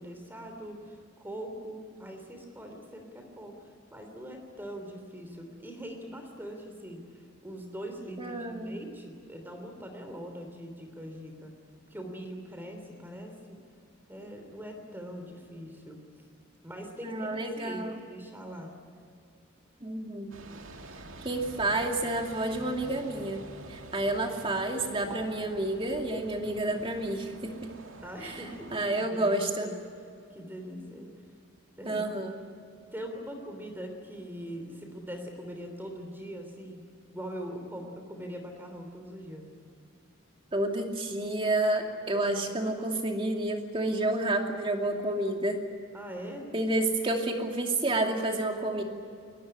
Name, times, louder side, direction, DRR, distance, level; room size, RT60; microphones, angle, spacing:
voice 1, 0.0-11.5 11.9-13.6 14.1-16.2 16.6-18.8 20.8-21.1 28.0-29.7 30.3-31.1 31.8-32.1 32.9-39.5 45.9-46.5, equal, 10° right, 4 dB, 3.2 m, -42 dB
voice 2, 8.2-8.7 17.0-18.0 19.8-20.3 21.2-27.7 28.2-28.4 28.7-29.7 31.8-32.3 40.5-45.6 46.5-48.8, right 2 dB, 25° right, 2 dB, 2.6 m, -30 dB
sound 1, 20.3-28.8, right 2 dB, 75° right, 2.3 m, -47 dB
22.5 x 19.5 x 10.0 m, 2.5 s
head